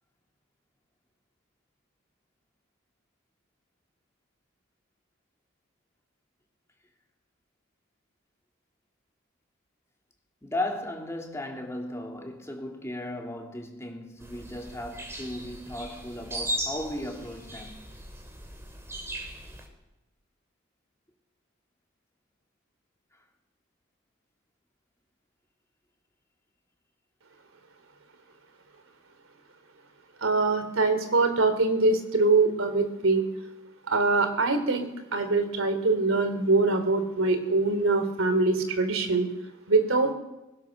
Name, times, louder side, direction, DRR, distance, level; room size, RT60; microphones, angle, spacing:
voice 1, 10.4-17.8, left 1 dB, 15° left, 2.9 m, -36 dB
sound 1, 14.2-19.7, right 1 dB, 10° right, 3.5 m, -38 dB
voice 2, 30.2-33.2 33.9-39.3 39.7-40.1, right 3 dB, 80° right, 3.3 m, -23 dB
23.0 x 20.5 x 6.6 m
head